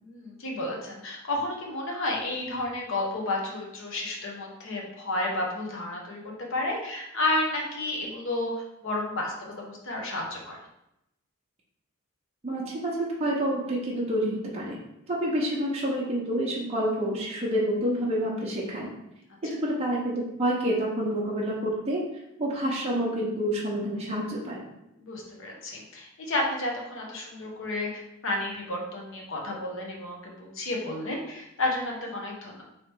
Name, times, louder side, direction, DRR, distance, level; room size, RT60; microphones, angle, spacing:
voice 1, 0.0-8.5 8.8-10.6 25.0-32.6, left 2 dB, 65° left, -1 dB, 0.9 m, -31 dB
voice 2, 12.4-14.8 15.1-18.9 19.5-22.0 22.4-24.7, equal, 30° right, -5 dB, 0.7 m, -28 dB
3.2 x 2.9 x 4.5 m, 0.85 s
head